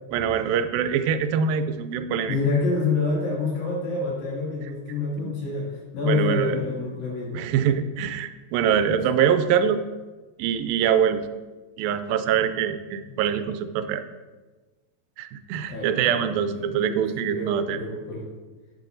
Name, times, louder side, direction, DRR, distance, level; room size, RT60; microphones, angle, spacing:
voice 1, 0.1-2.4 5.2-5.3 6.0-6.6 7.3-9.8 10.4-11.2 11.8-14.0 15.2-17.8, right 8 dB, 85° right, 10 dB, 2.3 m, -24 dB
voice 2, 2.3-5.7 5.9-7.4 15.7-16.2 16.6-18.3, left 3 dB, 85° left, -6 dB, 4.4 m, -27 dB
10.5 x 8.2 x 2.6 m, 1.3 s
omnidirectional pair, 4.0 m